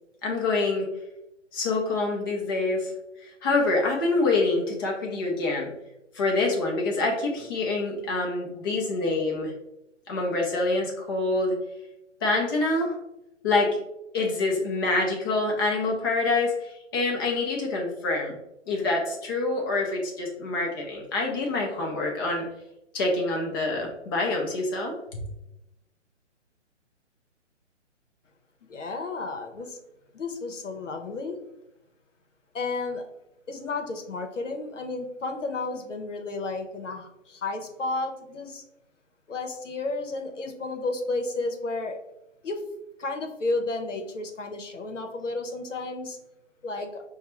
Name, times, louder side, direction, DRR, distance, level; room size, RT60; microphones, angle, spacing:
voice 1, 0.2-0.9 1.5-2.9 3.2-5.7 6.1-9.5 10.1-11.6 12.2-13.0 13.4-13.8 14.1-18.3 18.7-22.4 22.9-25.2, left 3 dB, 20° left, 0 dB, 0.6 m, -26 dB
voice 2, 28.7-29.8 30.1-31.4 32.5-33.1 33.5-38.6 39.3-42.0 42.4-42.6 43.0-46.2 46.6-47.0, left 3 dB, 80° left, 5 dB, 0.8 m, -32 dB
5.5 x 2.2 x 3.0 m, 0.90 s
figure-of-eight pair, 135°, 37 cm